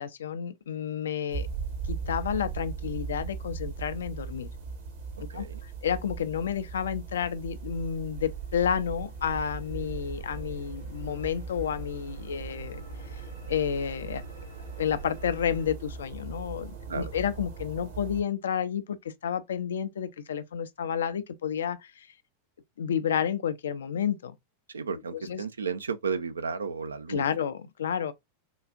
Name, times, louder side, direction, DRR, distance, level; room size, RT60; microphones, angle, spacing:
voice 1, 0.0-1.5 1.9-4.5 5.3-12.8 13.1-13.2 13.5-14.2 14.8-19.0 19.2-22.1 22.8-24.3 25.1-25.5 27.1-28.1, left 8 dB, 65° left, 0.4 m, -30 dB
sound 1, 1.3-18.2, right 5 dB, 55° right, 1.0 m, -39 dB
voice 2, 5.3-5.6 16.9-17.1 24.7-27.2, right 5 dB, 70° right, 0.4 m, -33 dB
sound 2, 6.6-15.7, right 1 dB, 90° right, 2.3 m, -49 dB
3.8 x 2.4 x 2.4 m
figure-of-eight pair, 90°, 0 cm